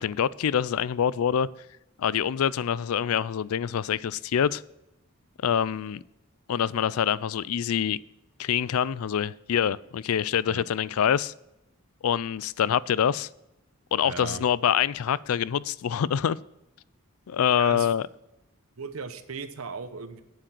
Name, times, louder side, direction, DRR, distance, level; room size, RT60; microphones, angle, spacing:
voice 1, 0.0-1.5 2.0-4.6 5.4-6.0 6.5-8.0 8.4-11.3 12.0-13.3 13.9-16.4 17.3-18.1, left 8 dB, 85° left, 0.4 m, -25 dB
voice 2, 14.0-14.4 17.6-17.9 18.8-20.2, right 5 dB, 80° right, 1.0 m, -37 dB
9.2 x 7.7 x 6.0 m
head